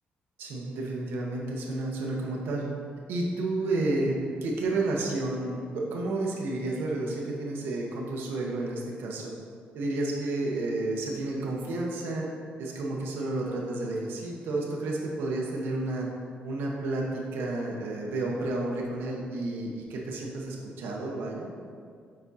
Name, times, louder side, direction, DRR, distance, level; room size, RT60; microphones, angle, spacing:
voice 1, 0.4-2.6 3.1-9.3 9.7-12.3 12.6-16.1 16.4-21.5, right 2 dB, 85° right, -2 dB, 0.9 m, -31 dB
6.9 x 5.2 x 2.8 m, 2.2 s
cardioid pair, 145°, 4 cm